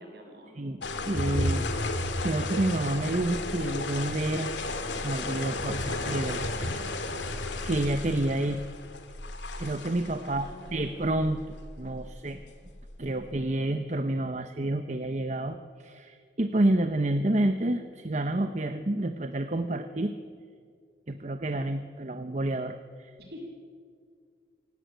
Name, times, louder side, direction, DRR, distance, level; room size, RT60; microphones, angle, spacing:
voice 1, 0.0-0.6 10.2-10.9 23.2-23.5, equal, 60° right, 1 dB, 6.9 m, -46 dB
voice 2, 0.5-1.7 2.2-4.5 4.9-7.1 7.6-8.6 9.6-11.4 11.8-12.4 13.0-20.1 21.1-23.1, right 1 dB, 40° right, 8 dB, 0.8 m, -29 dB
sound 1, 0.8-13.4, left 2 dB, 85° left, 2.3 m, -33 dB
24.5 x 17.0 x 9.2 m, 2.1 s
head